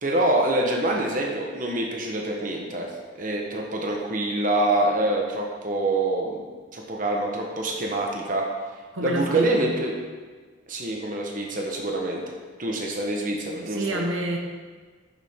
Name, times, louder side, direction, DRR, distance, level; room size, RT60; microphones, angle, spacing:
voice 1, 0.0-2.9 3.1-8.5 9.0-9.9 10.7-14.0, right 2 dB, 40° right, 0 dB, 1.1 m, -26 dB
voice 2, 8.9-9.7 13.7-14.4, right 1 dB, 80° right, 2 dB, 1.1 m, -27 dB
9.8 x 7.2 x 3.7 m, 1.5 s
head